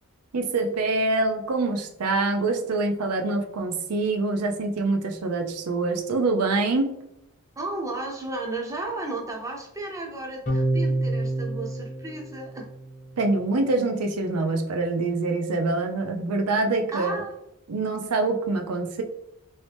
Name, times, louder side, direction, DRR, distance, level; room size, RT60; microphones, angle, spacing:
voice 1, 0.3-6.9 13.2-17.2 17.7-19.0, right 3 dB, 90° right, 4 dB, 0.6 m, -25 dB
voice 2, 7.6-12.7 16.9-17.4, right 2 dB, 15° right, 1 dB, 0.5 m, -33 dB
sound 1, 10.5-13.1, right 2 dB, 35° left, 0.8 m, -27 dB
3.1 x 2.8 x 3.2 m, 0.82 s
head